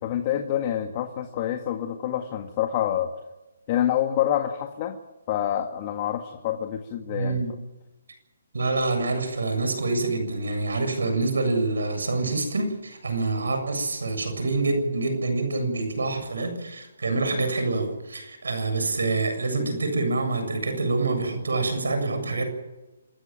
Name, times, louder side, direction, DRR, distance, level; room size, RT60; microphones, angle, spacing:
voice 1, 0.0-3.1 3.7-5.0 5.3-7.4, left 11 dB, 35° left, 5 dB, 1.8 m, -27 dB
voice 2, 7.0-7.5 8.5-22.4, right 3 dB, 85° right, 8 dB, 7.5 m, -26 dB
27.5 x 14.0 x 9.2 m, 1.1 s
hypercardioid pair, 155°, 0 cm